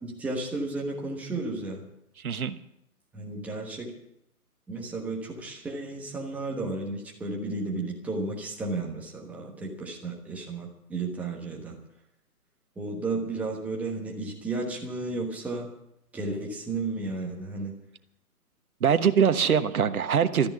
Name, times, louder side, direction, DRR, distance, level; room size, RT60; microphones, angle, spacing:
voice 1, 0.0-1.9 3.1-3.9 4.7-11.7 12.8-15.7 16.1-17.7, right 3 dB, 5° right, -1 dB, 1.2 m, -33 dB
voice 2, 2.2-2.6 18.8-20.5, right 7 dB, 65° right, 10 dB, 1.3 m, -23 dB
13.5 x 10.5 x 8.4 m, 0.79 s
hypercardioid pair, 150°, 46 cm